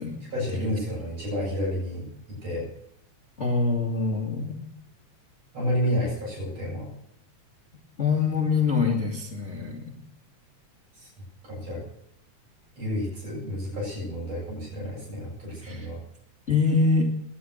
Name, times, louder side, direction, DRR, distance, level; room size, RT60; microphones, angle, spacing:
voice 1, 0.2-2.1 2.4-2.7 5.5-6.9 10.9-11.1 11.4-11.8 12.8-16.0, equal, 55° right, -5 dB, 9.0 m, -30 dB
voice 2, 3.4-4.7 8.0-9.8 15.6-15.9 16.5-17.1, left 4 dB, 25° left, 1 dB, 2.2 m, -24 dB
19.0 x 11.5 x 6.5 m, 0.75 s
omnidirectional pair, 3.4 m